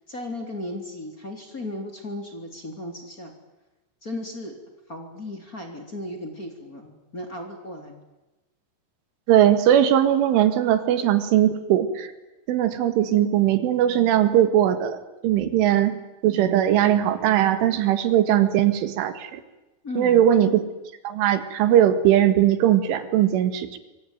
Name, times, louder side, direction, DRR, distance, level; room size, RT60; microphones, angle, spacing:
voice 1, 0.1-3.3 4.0-4.5 4.9-7.9 19.8-20.2, left 1 dB, 20° left, 3 dB, 3.4 m, -35 dB
voice 2, 9.3-12.1 12.5-15.0 15.2-15.9 16.2-19.4 20.0-20.6 21.0-23.8, right 11 dB, 85° right, 11 dB, 4.4 m, -19 dB
25.5 x 25.0 x 9.2 m, 1.0 s
omnidirectional pair, 5.4 m